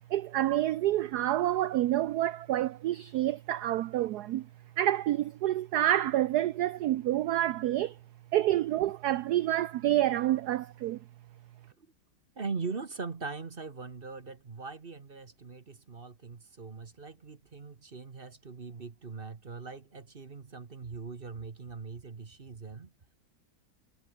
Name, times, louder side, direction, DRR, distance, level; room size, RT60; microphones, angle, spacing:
voice 1, 0.1-4.5 4.8-8.0 8.3-11.0, right 13 dB, 70° right, 1.0 m, -28 dB
voice 2, 12.4-22.9, right 4 dB, 30° right, 1.2 m, -41 dB
omnidirectional pair, 2.2 m